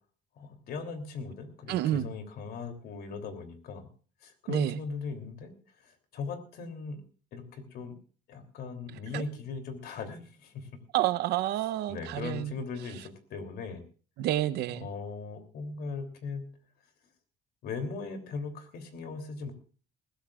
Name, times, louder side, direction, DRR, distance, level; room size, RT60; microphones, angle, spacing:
voice 1, 0.4-3.9 4.2-5.5 5.8-7.0 7.3-8.0 8.3-10.8 11.9-13.8 14.7-16.6 17.6-19.5, left 4 dB, 70° left, 3.1 m, -39 dB
voice 2, 1.7-2.1 4.5-4.8 9.1-9.2 10.9-12.6 14.2-14.9, right 13 dB, 80° right, 0.8 m, -29 dB
20.0 x 16.0 x 2.4 m
cardioid pair, 110°, 17 cm